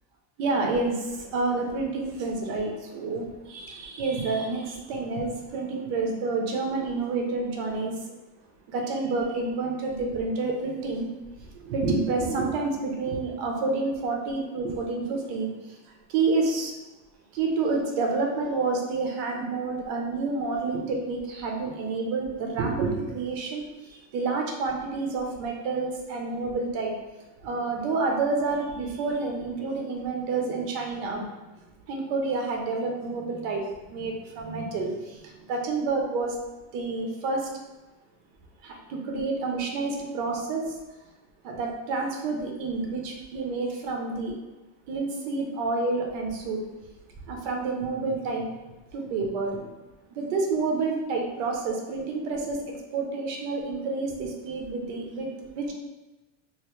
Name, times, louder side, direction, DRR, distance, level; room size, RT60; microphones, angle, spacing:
voice 1, 0.4-8.1 8.7-11.1 11.4-15.8 16.1-16.7 17.3-26.9 27.4-31.2 31.9-36.3 36.7-37.5 38.6-40.8 41.4-44.3 44.9-46.6 47.3-48.5 48.9-49.6 50.1-55.7, right 3 dB, 85° right, 1 dB, 0.9 m, -29 dB
3.1 x 2.6 x 3.1 m, 1.1 s
cardioid pair, 145°, 48 cm